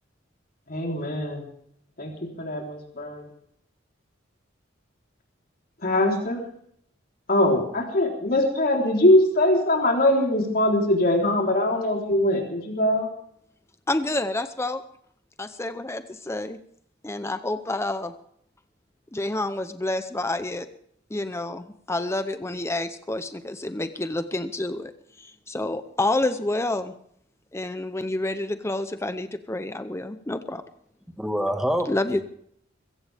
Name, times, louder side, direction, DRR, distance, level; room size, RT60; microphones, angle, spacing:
voice 1, 0.7-1.4 2.0-3.2 5.8-6.4 7.3-13.1, left 1 dB, 50° left, 3.8 m, -22 dB
voice 2, 13.9-14.8 15.4-16.6 17.0-18.1 19.1-20.7 21.1-26.9 27.5-30.6 31.9-32.2, left 2 dB, 15° left, 0.7 m, -28 dB
voice 3, 31.2-32.2, equal, 5° right, 1.8 m, -26 dB
22.5 x 16.5 x 3.5 m
head